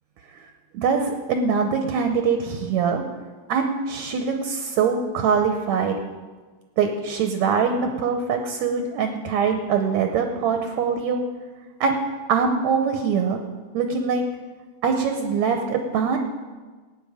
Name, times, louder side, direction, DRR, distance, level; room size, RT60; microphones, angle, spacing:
voice 1, 0.7-3.0 3.5-6.0 6.8-11.2 11.8-12.0 12.3-13.4 13.7-14.2 14.8-16.2, right 6 dB, 75° right, 5 dB, 1.7 m, -23 dB
17.0 x 9.3 x 4.9 m, 1.4 s
omnidirectional pair, 4.2 m